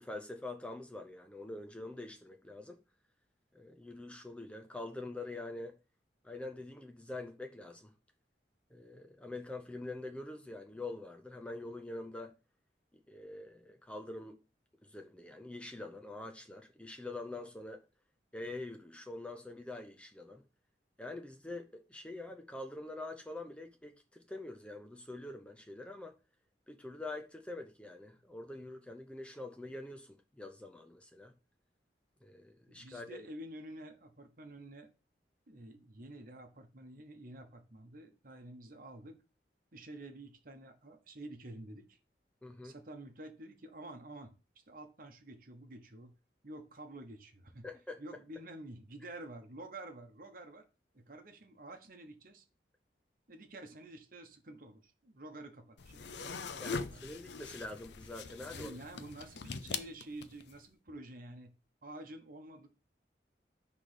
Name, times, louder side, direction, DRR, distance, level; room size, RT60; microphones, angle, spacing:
voice 1, 0.0-2.8 3.5-5.7 6.2-7.9 8.7-12.3 13.1-14.4 14.8-17.8 18.3-20.4 21.0-26.1 26.7-31.3 32.2-33.2 42.4-42.7 47.6-48.0 56.6-58.7, left 2 dB, 5° left, 0.5 m, -45 dB
voice 2, 32.7-34.9 35.5-39.2 39.7-42.0 42.6-44.3 44.7-46.1 46.4-47.6 48.0-50.7 50.9-52.4 53.3-57.1 58.5-61.5 61.8-62.7, right 1 dB, 50° right, 1.0 m, -49 dB
sound 1, 55.8-60.6, left 5 dB, 75° left, 0.6 m, -42 dB
6.0 x 3.3 x 4.9 m
head